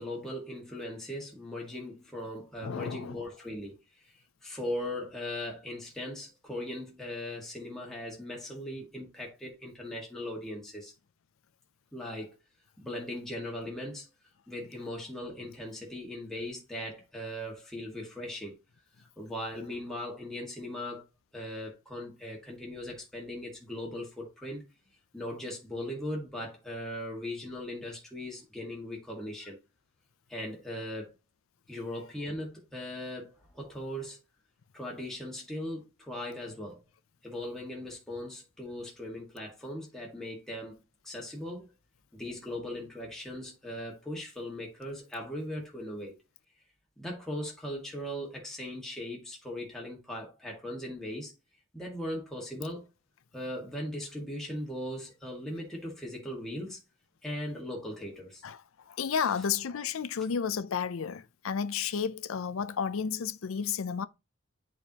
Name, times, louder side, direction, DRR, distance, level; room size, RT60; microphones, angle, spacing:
voice 1, 0.0-4.1 4.4-10.9 11.9-12.3 12.8-14.1 14.5-18.5 19.0-21.0 21.3-24.6 25.1-29.6 30.3-31.1 31.7-34.2 34.7-36.8 37.2-40.8 41.0-41.7 42.1-46.2 47.0-51.3 51.7-52.9 53.3-56.8 57.2-58.4 59.1-59.2, left 1 dB, ahead, 1.8 m, -39 dB
voice 2, 2.6-3.2 58.4-58.6 58.9-64.1, left 6 dB, 80° left, 0.5 m, -32 dB
8.6 x 4.6 x 2.9 m
head